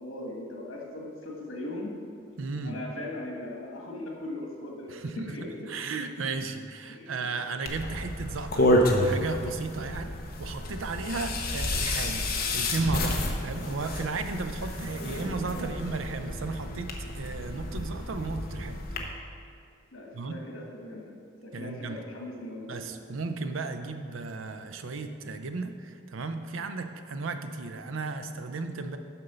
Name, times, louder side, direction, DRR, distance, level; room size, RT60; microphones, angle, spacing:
voice 1, 0.0-1.9 2.6-5.5 6.9-7.3 11.1-11.3 15.4-15.8 19.9-21.1 21.4-22.7, left 1 dB, 85° left, -1 dB, 1.6 m, -39 dB
voice 2, 2.4-2.8 4.9-10.1 10.4-12.2 12.5-18.8 20.1-20.4 21.5-22.0 22.7-29.0, right 3 dB, 80° right, 8 dB, 0.6 m, -34 dB
sound 1, 7.6-19.0, left 1 dB, 45° left, 0.9 m, -30 dB
6.8 x 5.3 x 6.8 m, 2.4 s
head